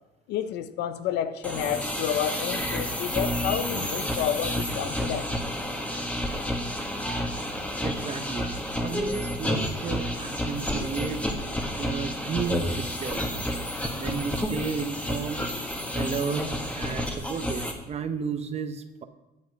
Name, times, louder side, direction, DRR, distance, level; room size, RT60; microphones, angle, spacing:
voice 1, 0.3-5.3, left 10 dB, 85° left, 0.6 m, -30 dB
sound 1, 1.4-17.7, equal, 10° left, 1.5 m, -30 dB
voice 2, 7.8-8.5 8.8-11.2 11.8-13.4 13.9-15.4 15.9-16.4 16.8-19.0, right 5 dB, 40° right, 0.9 m, -33 dB
9.5 x 7.7 x 5.3 m
cardioid pair, 110°, 17 cm